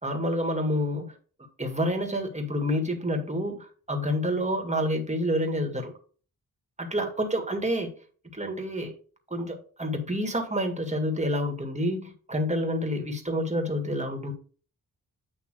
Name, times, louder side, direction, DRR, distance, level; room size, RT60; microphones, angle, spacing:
voice 1, 0.0-1.1 1.6-5.9 6.8-7.9 8.3-8.9 9.3-14.3, equal, 20° right, 4 dB, 1.9 m, -28 dB
8.8 x 3.0 x 6.1 m, 0.41 s
cardioid pair, 65°, 37 cm